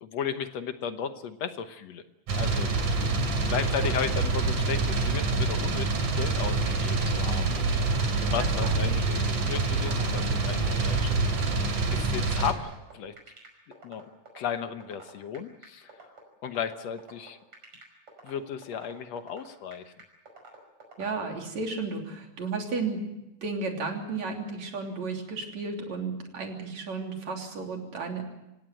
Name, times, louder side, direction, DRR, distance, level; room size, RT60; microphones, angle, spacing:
voice 1, 0.0-2.0 2.3-2.7 3.4-7.9 8.2-11.3 11.9-13.1 13.7-14.0 14.3-15.9 16.4-17.4 18.2-19.9, left 8 dB, 65° left, 9 dB, 2.2 m, -35 dB
Office Rattling aircon, 2.3-12.5, right 3 dB, 90° right, 4.2 m, -26 dB
sound 1, 2.4-21.1, right 3 dB, 50° right, 6.3 m, -48 dB
voice 2, 8.1-8.8 21.0-23.0 23.4-28.2, right 4 dB, 65° right, 2 dB, 4.5 m, -33 dB
27.0 x 17.0 x 7.8 m, 0.95 s
omnidirectional pair, 3.3 m